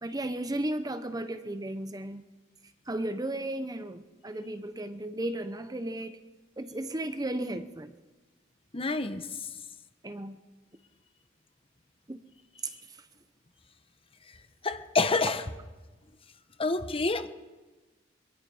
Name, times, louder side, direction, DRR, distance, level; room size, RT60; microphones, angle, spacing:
voice 1, 0.0-2.2 2.9-6.2 6.6-7.9 10.0-10.4 12.1-12.2 12.6-12.7, right 1 dB, 20° right, 0.9 m, -34 dB
voice 2, 8.7-9.2 14.6-15.4 16.6-17.3, left 3 dB, 30° left, 1.1 m, -27 dB
24.0 x 22.0 x 5.6 m
head